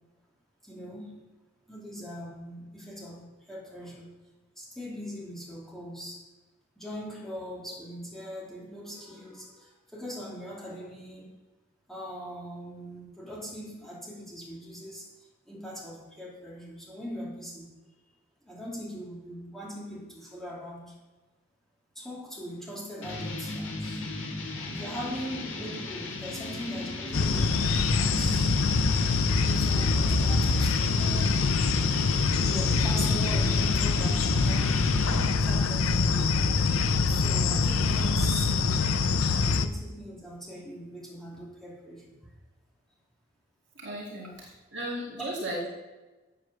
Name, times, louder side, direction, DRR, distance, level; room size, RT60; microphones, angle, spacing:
voice 1, 0.6-1.2 1.7-4.1 4.6-6.2 6.8-11.3 11.9-15.1 15.5-17.7 18.4-20.9 21.9-24.0 24.6-27.6 27.9-28.6 29.3-31.9 32.3-34.9 35.3-36.4 37.0-38.5 39.2-42.1 45.2-45.3, equal, ahead, -5 dB, 2.7 m, -40 dB
sound 1, 23.0-35.5, left 2 dB, 65° left, 2.0 m, -36 dB
sound 2, 27.1-39.7, left 4 dB, 85° left, 0.6 m, -24 dB
voice 2, 43.8-45.8, right 1 dB, 55° right, -3 dB, 2.2 m, -36 dB
8.1 x 8.0 x 6.7 m, 1.2 s
head